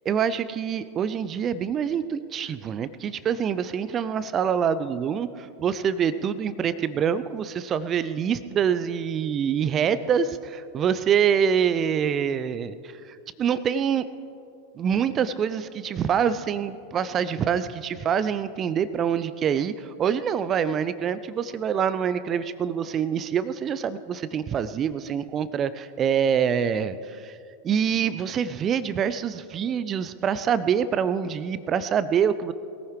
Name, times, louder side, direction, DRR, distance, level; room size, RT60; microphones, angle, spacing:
voice 1, 0.1-12.8 13.1-14.0 14.8-27.4 27.6-32.5, right 8 dB, 25° right, 15 dB, 0.5 m, -25 dB
21.5 x 15.0 x 3.3 m, 2.5 s
figure-of-eight pair, 90°, 0 cm